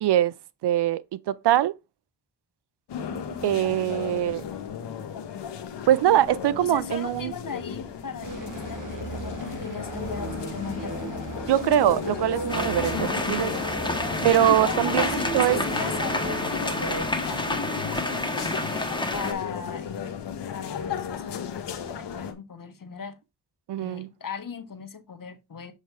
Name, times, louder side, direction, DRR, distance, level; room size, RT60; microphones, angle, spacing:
voice 1, 0.0-0.3 0.6-1.7 3.4-4.4 5.9-7.3 11.5-13.5 14.2-15.1 15.3-15.6 23.7-24.1, right 12 dB, 75° right, 0.5 m, -22 dB
sound 1, 2.9-22.3, left 7 dB, 85° left, 1.1 m, -35 dB
voice 2, 6.6-11.1 12.8-12.9 14.3-20.2 20.5-23.2 23.8-25.7, left 6 dB, 55° left, 1.4 m, -38 dB
sound 2, 8.2-17.0, right 2 dB, 50° right, 2.1 m, -36 dB
sound 3, 12.5-19.3, left 2 dB, 10° left, 1.4 m, -29 dB
7.4 x 3.2 x 4.6 m
cardioid pair, 50°, 40 cm